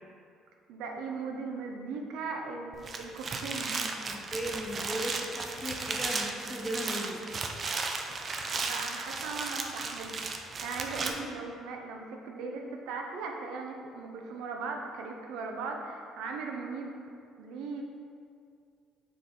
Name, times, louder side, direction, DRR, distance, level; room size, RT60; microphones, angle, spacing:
voice 1, 0.7-3.9 8.6-16.9 17.4-17.8, right 4 dB, 85° right, 2 dB, 0.7 m, -38 dB
sound 1, 2.7-11.1, right 4 dB, 35° right, 0.5 m, -35 dB
voice 2, 3.9-7.3, equal, 5° left, 0 dB, 0.7 m, -37 dB
6.3 x 3.9 x 4.3 m, 2.3 s
cardioid pair, 135°, 0 cm